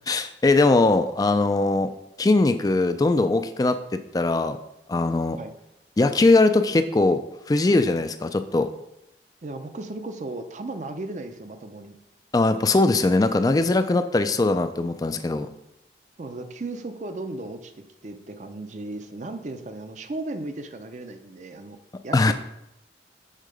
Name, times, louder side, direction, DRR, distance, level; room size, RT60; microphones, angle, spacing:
voice 1, 0.1-1.9 2.2-4.6 4.9-5.4 6.0-7.2 7.5-8.7 12.3-15.5 22.1-22.3, left 2 dB, 20° left, 9 dB, 0.3 m, -20 dB
voice 2, 9.4-12.0 16.2-21.8 22.0-22.3, right 2 dB, 40° right, 8 dB, 0.5 m, -35 dB
6.6 x 3.7 x 5.1 m, 0.85 s
head